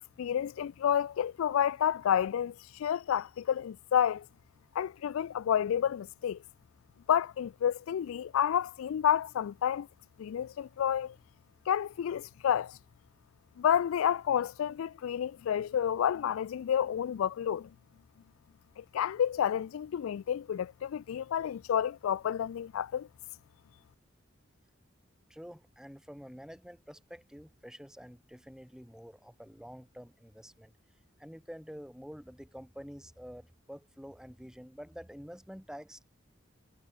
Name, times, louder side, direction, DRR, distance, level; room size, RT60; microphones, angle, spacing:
voice 1, 0.2-4.3 4.8-6.4 7.1-9.9 10.2-11.1 11.7-12.8 13.6-17.7 18.8-23.1, left 9 dB, 90° left, 0.3 m, -30 dB
voice 2, 25.3-30.7 31.2-36.1, equal, 5° right, 1.8 m, -48 dB
head